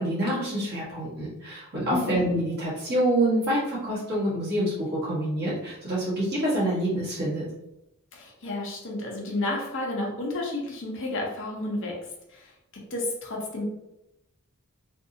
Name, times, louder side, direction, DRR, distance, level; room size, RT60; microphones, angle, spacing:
voice 1, 0.0-7.4, right 1 dB, 45° right, -7 dB, 1.3 m, -27 dB
voice 2, 1.9-2.3 8.1-11.9 12.3-12.5 12.9-13.6, left 2 dB, 60° left, -1 dB, 0.9 m, -31 dB
3.5 x 2.6 x 2.7 m, 0.88 s
head